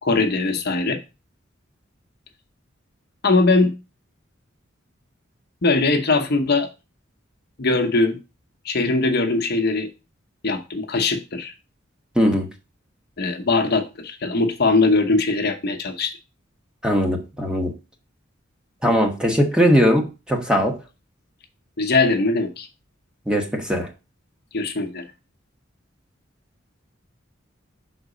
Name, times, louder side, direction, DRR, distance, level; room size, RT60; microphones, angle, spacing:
voice 1, 0.0-1.0 3.2-3.7 5.6-6.7 7.6-8.2 8.6-9.9 10.4-11.5 13.2-16.1 21.8-22.7 24.5-25.0, left 3 dB, 55° left, 0.9 m, -20 dB
voice 2, 12.1-12.5 16.8-17.7 18.8-20.8 23.3-23.9, equal, 5° right, 1.1 m, -20 dB
5.9 x 4.0 x 5.0 m
head